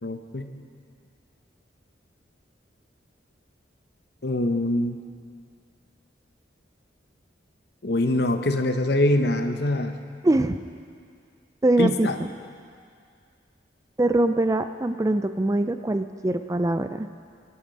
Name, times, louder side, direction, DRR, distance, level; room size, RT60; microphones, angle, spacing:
voice 1, 0.0-0.5 4.2-5.0 7.8-9.9 11.8-12.2, left 1 dB, 60° left, 7 dB, 0.9 m, -24 dB
voice 2, 10.2-10.6 11.6-12.3 14.0-17.1, right 2 dB, 15° right, 9 dB, 0.3 m, -23 dB
22.5 x 8.7 x 5.3 m, 2.2 s
head